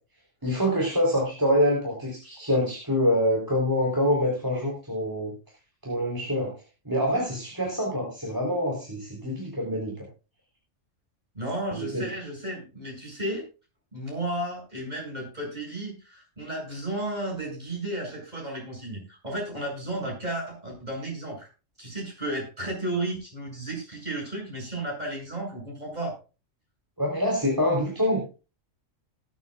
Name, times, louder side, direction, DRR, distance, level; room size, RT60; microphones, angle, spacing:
voice 1, 0.4-5.3 5.8-6.5 6.8-10.1 11.7-12.1 27.0-28.2, equal, 15° right, -1 dB, 3.9 m, -25 dB
voice 2, 11.3-13.5 13.9-21.5 21.8-26.2, right 1 dB, 30° right, -2 dB, 7.9 m, -33 dB
19.5 x 9.7 x 2.4 m, 0.32 s
omnidirectional pair, 1.3 m